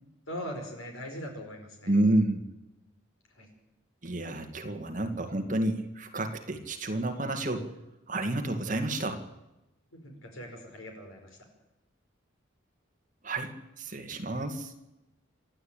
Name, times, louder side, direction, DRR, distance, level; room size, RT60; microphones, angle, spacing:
voice 1, 0.3-1.9 3.4-3.5 9.9-11.3, equal, 85° left, 3 dB, 5.4 m, -40 dB
voice 2, 1.9-2.4 4.0-7.7 8.1-9.2 13.2-14.7, right 1 dB, 40° right, 5 dB, 2.0 m, -30 dB
27.0 x 12.0 x 9.0 m, 0.96 s
head